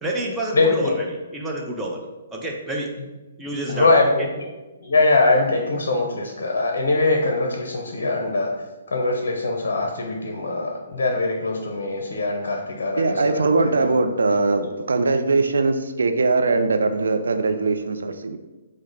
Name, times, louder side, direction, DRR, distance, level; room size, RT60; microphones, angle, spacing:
voice 1, 0.0-1.1 1.3-2.0 2.3-2.9 3.4-4.0, right 1 dB, 10° right, -1 dB, 0.6 m, -28 dB
voice 2, 0.5-1.0 3.7-4.5 4.8-8.5 8.9-13.9 14.5-14.6, left 2 dB, 60° left, 1 dB, 0.6 m, -22 dB
voice 3, 13.0-18.4, right 3 dB, 75° right, 7 dB, 0.4 m, -21 dB
4.8 x 2.1 x 3.9 m, 1.1 s
figure-of-eight pair, 135°, 0 cm